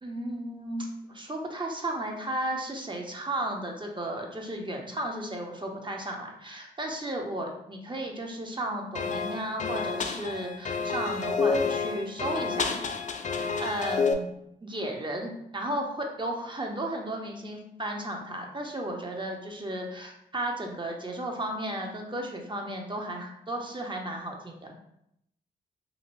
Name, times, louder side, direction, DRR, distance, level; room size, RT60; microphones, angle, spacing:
voice 1, 0.0-12.7 13.4-14.3 14.6-24.7, right 1 dB, 25° right, 1 dB, 0.7 m, -34 dB
sound 1, 8.9-14.1, left 4 dB, 40° left, 0.4 m, -29 dB
2.6 x 2.5 x 3.0 m, 0.77 s
supercardioid pair, 50°, 19 cm